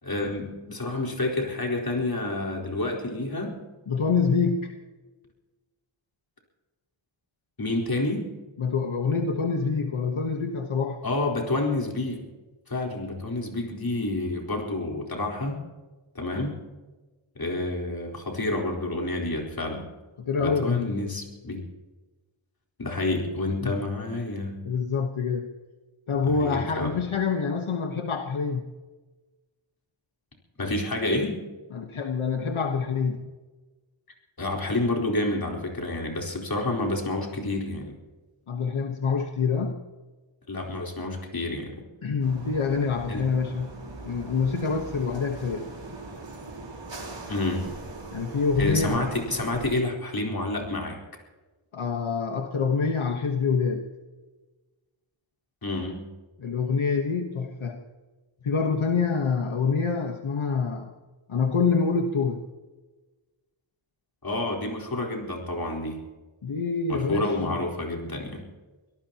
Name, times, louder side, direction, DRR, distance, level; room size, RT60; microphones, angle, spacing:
voice 1, 0.0-3.6 7.6-8.3 11.0-12.2 12.7-15.7 16.1-16.7 17.4-19.9 20.4-21.6 22.8-24.7 26.2-27.0 30.6-31.4 34.4-38.0 40.5-41.8 43.1-43.3 47.3-47.7 48.6-51.0 55.6-56.1 64.2-66.0 66.9-68.5, left 2 dB, 45° left, 0 dB, 4.3 m, -29 dB
voice 2, 3.9-4.7 8.6-11.0 20.2-20.9 23.6-23.7 24.6-25.5 26.1-28.7 31.7-33.2 38.5-39.8 42.0-43.7 44.0-45.7 48.1-49.1 51.7-53.8 56.4-57.8 58.4-60.9 61.3-62.4 66.4-67.6, left 5 dB, 75° left, 4 dB, 1.4 m, -26 dB
sound 1, 42.2-49.7, right 2 dB, 60° right, 4.4 m, -40 dB
25.0 x 18.0 x 3.0 m, 1.2 s
wide cardioid pair, 85°, 49 cm